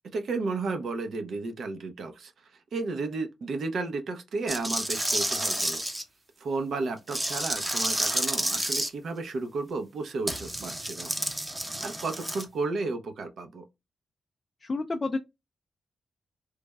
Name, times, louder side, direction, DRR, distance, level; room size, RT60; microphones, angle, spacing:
voice 1, 0.1-2.3 2.7-5.8 6.4-11.1 11.6-13.7, right 3 dB, 65° right, 0.6 m, -33 dB
sound 1, 4.5-6.0 7.1-8.9 10.3-12.4, right 1 dB, 15° right, 0.6 m, -30 dB
voice 2, 14.6-15.2, left 3 dB, 30° left, 0.3 m, -29 dB
3.3 x 2.1 x 3.4 m
wide cardioid pair, 125°, 0 cm